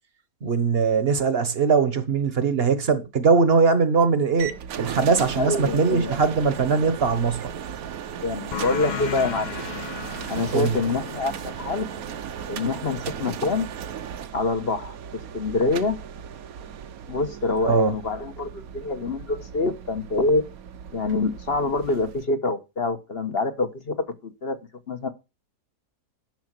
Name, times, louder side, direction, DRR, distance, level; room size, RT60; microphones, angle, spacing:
voice 1, 0.4-4.5 4.8-7.5 10.5-10.8 17.6-17.9, right 5 dB, 40° right, 1.2 m, -21 dB
sound 1, 4.4-22.3, right 8 dB, 65° right, 1.2 m, -36 dB
voice 2, 5.4-6.2 8.2-9.6 10.3-11.9 12.5-13.7 14.3-15.0 15.3-16.0 17.1-20.4 20.9-24.0 24.2-24.6 24.9-25.1, left 3 dB, 40° left, 1.2 m, -25 dB
sound 2, 8.5-13.7, left 7 dB, 65° left, 0.4 m, -36 dB
10.5 x 6.0 x 6.0 m
omnidirectional pair, 1.7 m